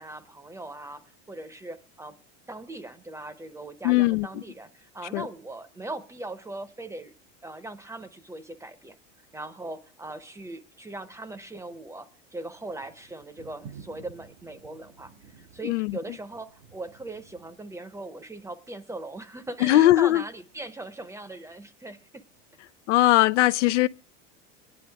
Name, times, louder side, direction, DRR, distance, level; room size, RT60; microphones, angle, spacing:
voice 1, 0.0-2.2 2.5-7.1 7.4-9.0 9.3-22.2, right 2 dB, 10° right, 0.8 m, -40 dB
voice 2, 3.8-4.4 5.1-5.3 15.6-16.0 19.6-20.2 22.9-23.9, left 16 dB, 80° left, 0.6 m, -20 dB
sound 1, 12.5-17.5, right 6 dB, 80° right, 2.4 m, -51 dB
23.0 x 10.0 x 3.5 m
supercardioid pair, 120°, 36 cm